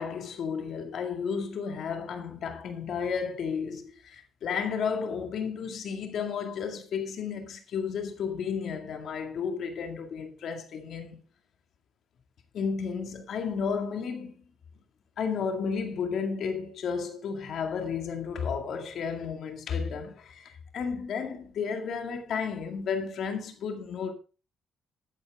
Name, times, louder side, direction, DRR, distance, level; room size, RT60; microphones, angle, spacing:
voice 1, 0.0-11.2 12.5-14.4 15.2-24.1, left 6 dB, 65° left, 2.2 m, -33 dB
12.0 x 8.8 x 3.6 m
cardioid pair, 90°, 0 cm